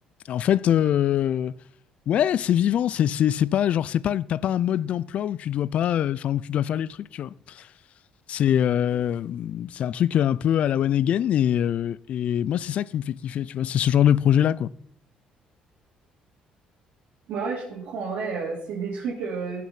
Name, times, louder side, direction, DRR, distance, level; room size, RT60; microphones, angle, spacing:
voice 1, 0.3-1.5 2.1-7.7 8.3-14.7, left 10 dB, 55° left, 0.3 m, -23 dB
voice 2, 17.3-19.6, right 5 dB, 70° right, 3.4 m, -30 dB
16.5 x 6.0 x 5.8 m
cardioid pair, 140°, 3 cm